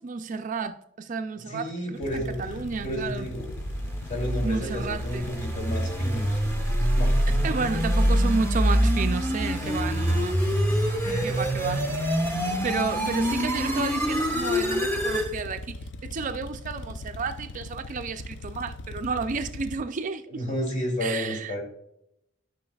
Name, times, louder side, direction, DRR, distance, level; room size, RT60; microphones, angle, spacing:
voice 1, 0.0-3.3 4.4-5.3 7.4-10.4 11.2-11.8 12.6-20.4 21.0-21.6, right 4 dB, 40° right, 0.4 m, -31 dB
voice 2, 1.5-2.6 2.8-3.5 4.1-6.4 6.9-7.5 9.6-9.9 11.0-11.3 20.3-21.6, equal, 40° left, 2.6 m, -32 dB
sound 1, 2.0-19.8, left 2 dB, 70° left, 0.5 m, -40 dB
sound 2, 3.1-15.3, equal, 15° left, 1.2 m, -25 dB
12.5 x 5.8 x 2.3 m
head